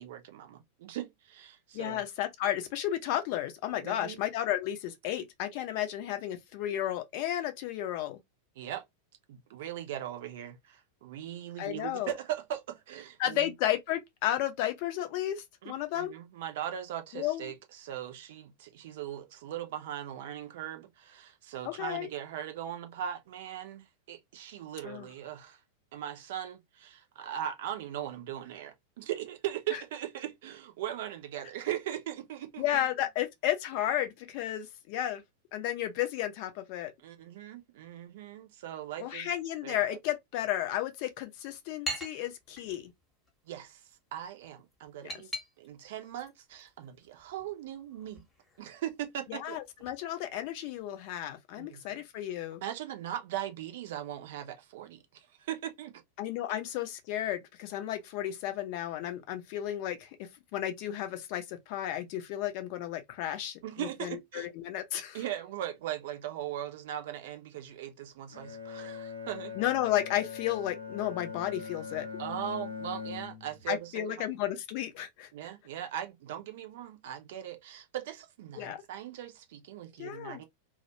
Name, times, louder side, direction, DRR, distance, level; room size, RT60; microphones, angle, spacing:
voice 1, 0.0-2.0 3.8-4.2 8.6-8.8 9.3-13.5 15.6-25.6 25.9-32.6 37.0-39.3 39.6-40.0 43.5-43.8 44.1-45.3 45.6-48.2 48.6-49.6 51.6-51.8 52.6-56.0 63.6-64.5 65.1-69.6 72.2-74.3 75.3-80.4, right 11 dB, 55° right, 0.6 m, -39 dB
voice 2, 1.7-8.2 11.6-12.1 13.2-16.1 17.1-17.5 21.6-22.1 24.8-25.1 29.7-29.8 32.6-35.2 35.5-36.9 39.0-42.9 45.0-45.2 49.3-52.6 56.2-65.2 69.5-72.1 73.7-75.3 78.5-78.8 80.0-80.4, left 12 dB, 45° left, 0.5 m, -33 dB
sound 1, 41.0-51.0, equal, 15° left, 0.9 m, -46 dB
Bowed string instrument, 68.3-73.8, left 5 dB, 85° right, 0.8 m, -41 dB
2.3 x 2.1 x 2.8 m
figure-of-eight pair, 90°, 0 cm